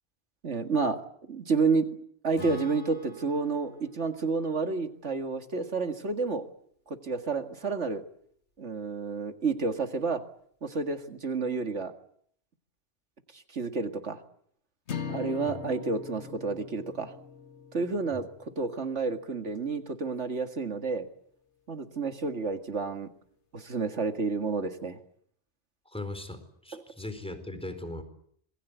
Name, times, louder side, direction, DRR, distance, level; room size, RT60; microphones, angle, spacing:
voice 1, 0.4-1.0 1.3-1.9 2.2-6.4 6.9-8.0 8.6-10.2 10.6-11.9 13.5-14.2 15.1-17.1 17.7-18.3 18.6-21.1 21.7-23.1 23.5-25.0 26.7-26.8, right 4 dB, 80° right, 7 dB, 2.4 m, -30 dB
Acoustic guitar / Strum, 2.4-5.9, left 1 dB, 85° left, 4.1 m, -46 dB
sound 1, 14.9-19.2, left 6 dB, 70° left, 1.8 m, -41 dB
voice 2, 25.9-28.0, left 2 dB, 5° left, 9 dB, 4.2 m, -39 dB
27.0 x 22.0 x 8.2 m, 0.65 s
omnidirectional pair, 1.2 m